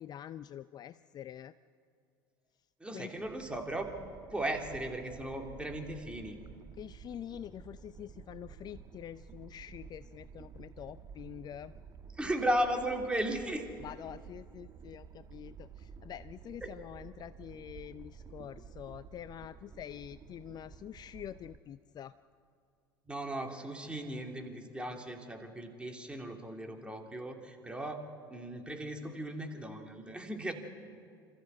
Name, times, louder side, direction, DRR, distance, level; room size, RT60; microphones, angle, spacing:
voice 1, 0.0-1.5 2.9-3.2 6.7-11.7 13.8-22.1, left 10 dB, 35° left, 15 dB, 0.5 m, -46 dB
voice 2, 2.8-3.9 4.3-6.4 12.2-13.6 16.6-16.7 23.1-28.0 28.3-30.5, right 1 dB, 10° right, 3 dB, 2.9 m, -36 dB
sound 1, 3.2-21.6, right 6 dB, 30° right, 1.2 m, -52 dB
27.0 x 14.0 x 8.0 m, 2.3 s
hypercardioid pair, 75°, 12 cm